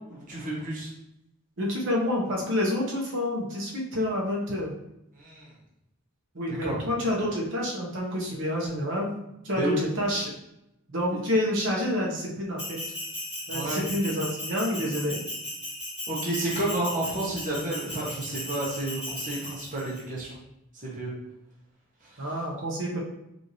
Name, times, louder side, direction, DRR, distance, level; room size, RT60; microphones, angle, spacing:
voice 1, 0.1-0.9 5.2-5.5 6.5-6.8 9.6-9.8 13.5-13.8 16.1-20.4 20.8-21.1 22.0-22.2, right 2 dB, 35° right, -4 dB, 0.9 m, -31 dB
voice 2, 1.6-4.7 6.3-9.1 9.4-10.3 10.9-12.8 13.5-15.2 22.2-23.0, left 1 dB, 55° right, -3 dB, 1.0 m, -28 dB
Bell, 12.6-20.0, left 1 dB, 5° right, 1.3 m, -36 dB
5.2 x 2.7 x 3.0 m, 0.85 s
head